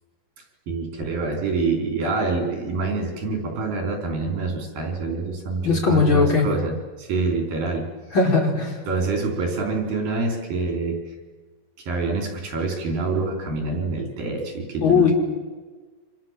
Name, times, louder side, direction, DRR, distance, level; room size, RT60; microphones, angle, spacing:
voice 1, 0.7-7.9 8.9-11.0 11.8-15.1, right 3 dB, 75° right, 2 dB, 6.4 m, -26 dB
voice 2, 5.6-6.5 8.1-8.8 14.8-15.1, left 4 dB, 35° left, -1 dB, 5.2 m, -18 dB
29.5 x 26.5 x 7.7 m, 1.3 s
omnidirectional pair, 4.1 m